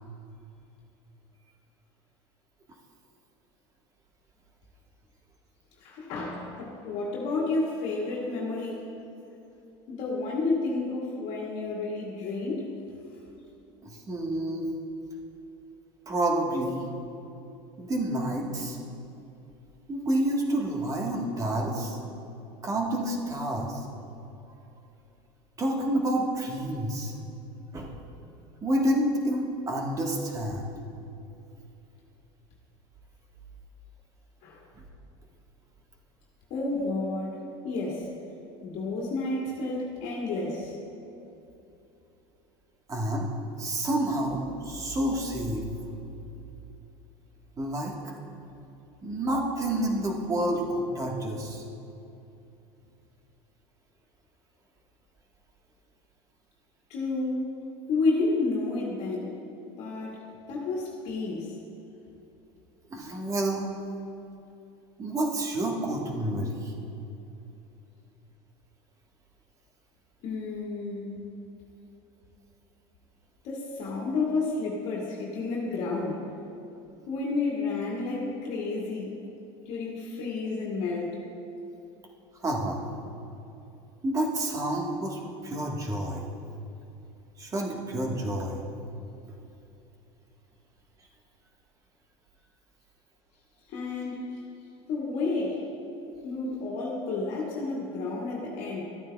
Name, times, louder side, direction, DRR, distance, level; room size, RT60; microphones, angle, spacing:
voice 1, 5.8-8.8 9.9-12.7 34.4-34.6 36.5-38.1 38.6-40.8 56.9-57.5 57.9-59.4 59.8-61.5 70.2-71.1 73.4-76.2 77.1-79.2 79.6-81.2 93.7-94.4 94.9-95.6 96.2-98.8, left 3 dB, 60° left, -4 dB, 1.9 m, -31 dB
voice 2, 13.8-14.6 16.1-16.8 17.8-18.8 19.9-22.0 22.6-23.8 25.6-27.1 27.7-27.9 28.6-30.7 42.9-43.3 43.6-45.6 47.6-47.9 49.0-51.6 62.9-63.7 65.0-66.7 82.4-82.9 84.0-86.2 87.4-88.6, right 1 dB, 25° right, 0 dB, 1.4 m, -29 dB
13.5 x 9.1 x 2.3 m, 2.8 s
supercardioid pair, 115°, 13 cm